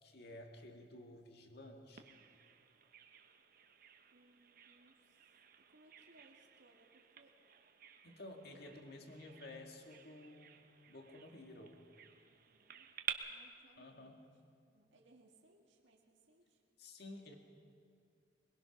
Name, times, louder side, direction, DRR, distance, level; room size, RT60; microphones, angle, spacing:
voice 1, 0.0-2.1 8.0-11.8 13.8-14.2 16.8-17.4, left 1 dB, 60° left, 3 dB, 2.0 m, -53 dB
Bird vocalization bird call bird song, 2.0-13.1, right 9 dB, 50° right, 1.1 m, -52 dB
voice 2, 4.1-5.3 5.6-7.4 8.5-9.0 9.2-10.1 12.4-12.9 13.3-14.4 14.7-16.6, right 1 dB, 85° right, 0 dB, 1.9 m, -67 dB
22.0 x 21.5 x 5.9 m, 2.3 s
head